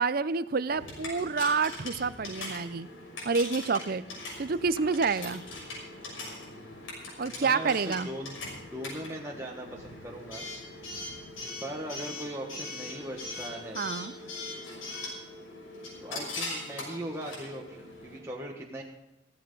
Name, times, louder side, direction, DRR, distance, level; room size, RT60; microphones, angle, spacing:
voice 1, 0.0-2.9 3.2-4.0 4.4-5.4 7.2-8.1 13.8-14.1, right 4 dB, 45° right, 16 dB, 0.5 m, -28 dB
Coin (dropping) / Alarm, 0.7-18.2, left 2 dB, 80° left, 6.3 m, -41 dB
voice 2, 7.2-10.5 11.6-13.8 16.0-18.8, right 1 dB, 15° right, -2 dB, 1.4 m, -39 dB
15.5 x 15.0 x 3.9 m, 0.95 s
head